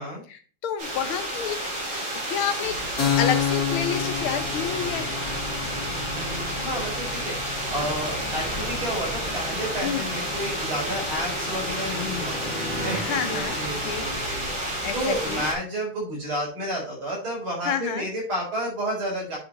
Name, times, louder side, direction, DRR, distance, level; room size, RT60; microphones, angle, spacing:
voice 1, 0.3-1.7 2.3-2.8 3.2-5.3 9.8-10.0 12.9-13.6 13.8-14.1 14.8-15.5 17.6-18.1, left 8 dB, 80° left, 8 dB, 1.8 m, -29 dB
sound 1, 0.8-15.5, right 1 dB, 60° right, 4.3 m, -30 dB
Keyboard (musical), 3.0-10.3, left 10 dB, 50° left, 2.5 m, -31 dB
voice 2, 5.9-19.4, equal, 80° right, -4 dB, 5.2 m, -31 dB
sound 2, 9.1-14.7, left 1 dB, 5° left, 1.4 m, -38 dB
9.4 x 4.8 x 4.1 m, 0.39 s
omnidirectional pair, 2.3 m